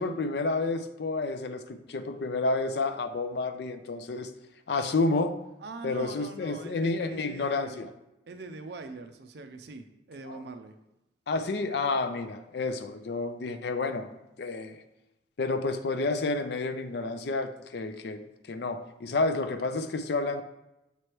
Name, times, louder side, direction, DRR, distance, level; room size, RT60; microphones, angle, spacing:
voice 1, 0.0-4.3 4.7-5.4 5.8-7.9 10.3-10.4 11.3-14.1 14.4-14.8 15.4-18.2 18.5-20.4, left 3 dB, 55° left, 9 dB, 0.4 m, -30 dB
voice 2, 5.6-7.8 8.3-10.8, right 3 dB, 55° right, 7 dB, 0.5 m, -43 dB
6.8 x 3.2 x 4.5 m, 0.92 s
head